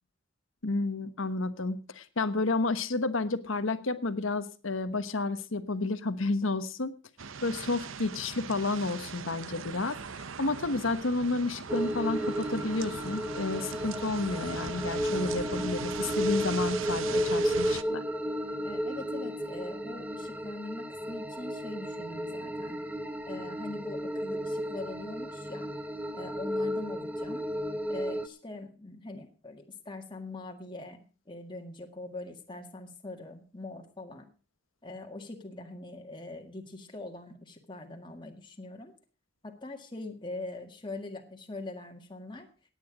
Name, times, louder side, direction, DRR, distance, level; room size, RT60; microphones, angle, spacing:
voice 1, 0.6-6.9 7.4-10.0 10.4-18.0, left 3 dB, 85° left, 11 dB, 1.2 m, -31 dB
sound 1, 7.2-17.8, right 6 dB, 85° right, 0.8 m, -40 dB
sound 2, 11.7-28.3, equal, 10° right, 0.7 m, -33 dB
voice 2, 18.6-22.8 23.3-25.7 26.1-27.5 27.9-34.3 34.8-38.9 39.4-42.5, left 2 dB, 25° left, 3 dB, 1.8 m, -42 dB
17.0 x 9.4 x 5.0 m, 0.36 s
head